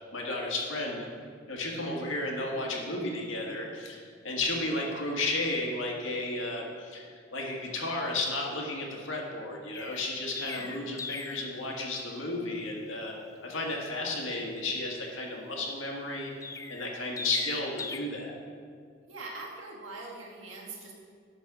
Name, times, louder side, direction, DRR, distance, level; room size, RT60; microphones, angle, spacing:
voice 1, 0.1-1.1 1.5-13.1 13.4-18.4, left 2 dB, 80° left, -1 dB, 1.7 m, -33 dB
Chirp tweet, 9.7-11.5 16.4-18.0, left 4 dB, 15° left, 0.4 m, -40 dB
voice 2, 19.0-20.9, right 3 dB, 90° right, -3 dB, 1.8 m, -43 dB
11.0 x 4.1 x 6.1 m, 2.1 s
head